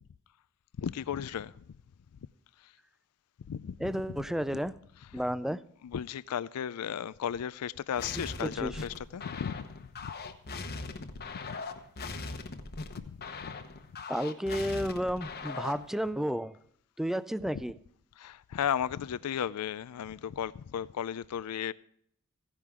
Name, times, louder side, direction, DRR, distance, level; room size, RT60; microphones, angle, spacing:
voice 1, 0.8-1.6 2.6-2.7 3.5-3.9 5.8-10.1 10.6-11.0 11.4-11.6 13.0-13.5 18.2-21.7, left 8 dB, 80° left, 0.4 m, -35 dB
voice 2, 3.8-4.7 5.1-5.6 8.4-8.8 14.1-16.6 17.0-17.7, equal, ahead, 0.4 m, -32 dB
sound 1, 8.0-15.9, left 3 dB, 45° left, 1.0 m, -40 dB
15.5 x 10.5 x 3.6 m
head